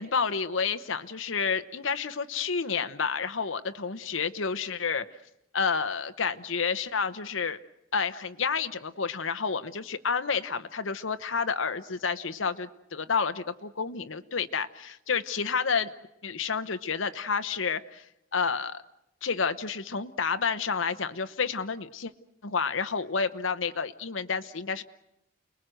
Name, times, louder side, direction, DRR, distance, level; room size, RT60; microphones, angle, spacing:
voice 1, 0.0-5.0 5.5-7.6 7.9-15.9 16.2-18.0 18.3-18.8 19.2-22.1 22.4-24.8, left 5 dB, 85° left, 10 dB, 1.0 m, -30 dB
29.5 x 20.5 x 7.8 m, 0.83 s
head